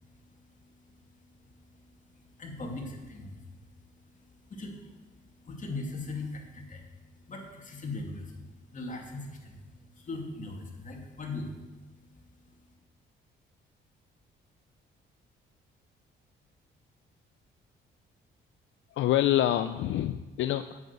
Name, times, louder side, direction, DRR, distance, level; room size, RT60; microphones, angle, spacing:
voice 1, 0.1-0.9 1.2-6.9 7.2-11.7 12.1-12.8, left 2 dB, 40° left, 1 dB, 2.4 m, -41 dB
voice 2, 18.9-20.8, left 12 dB, 75° left, 10 dB, 0.5 m, -26 dB
9.2 x 7.9 x 6.7 m, 1.2 s
cardioid pair, 90°, 20 cm